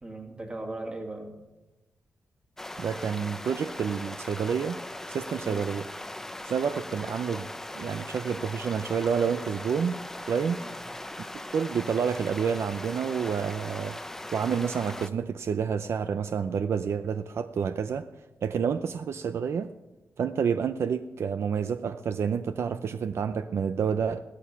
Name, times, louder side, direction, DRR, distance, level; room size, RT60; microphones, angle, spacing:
voice 1, 0.0-1.3 5.4-5.7 10.6-10.8 22.6-22.8, right 2 dB, 20° right, 3 dB, 2.0 m, -39 dB
sound 1, 2.6-15.1, left 1 dB, 10° left, 0.6 m, -39 dB
voice 2, 2.8-4.8 5.1-5.9 6.4-7.5 7.7-10.0 10.3-10.6 11.5-14.0 14.3-18.0 18.4-19.7 20.2-24.2, right 7 dB, 65° right, 10 dB, 0.5 m, -29 dB
16.0 x 13.0 x 5.8 m, 1.0 s
wide cardioid pair, 165°, 5 cm